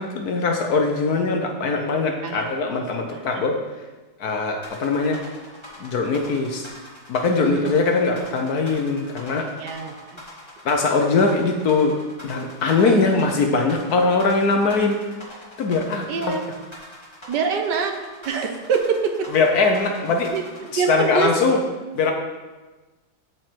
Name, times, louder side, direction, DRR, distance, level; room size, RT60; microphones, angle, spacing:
voice 1, 0.0-3.6 4.2-5.2 5.8-6.7 7.1-9.5 10.6-12.0 12.2-15.0 15.6-16.4 19.3-20.3 20.7-21.6 21.9-22.1, left 3 dB, 60° left, 3 dB, 1.2 m, -21 dB
voice 2, 2.8-3.2 7.3-7.8 9.6-10.2 12.7-12.9 16.1-16.4 17.3-17.9 18.2-19.3 20.3-20.4 20.8-21.3, right 6 dB, 70° right, 5 dB, 1.4 m, -25 dB
sound 1, 4.6-20.7, left 1 dB, 15° left, 2.2 m, -42 dB
13.0 x 4.7 x 4.5 m, 1.2 s
omnidirectional pair, 2.1 m